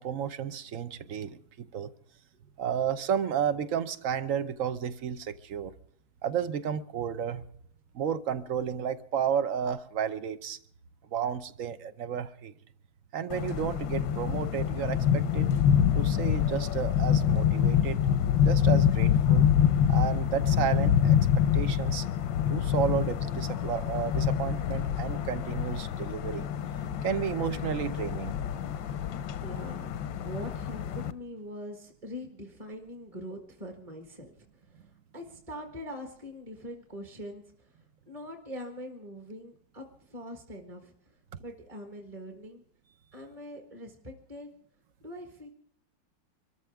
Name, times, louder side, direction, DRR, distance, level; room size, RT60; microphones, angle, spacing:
voice 1, 0.0-1.9 2.6-5.7 6.2-7.4 7.9-10.6 11.1-12.5 13.1-15.5 15.9-18.0 18.4-19.5 19.9-21.2 21.5-22.1 22.5-26.5 27.0-28.3, right 8 dB, 55° right, 1.0 m, -32 dB
sound 1, 13.3-31.1, left 9 dB, 90° left, 1.5 m, -26 dB
voice 2, 29.0-30.0 30.2-40.9 41.4-42.6 43.1-44.5 45.0-45.5, equal, 20° right, 1.5 m, -43 dB
25.0 x 13.5 x 3.5 m
omnidirectional pair, 2.0 m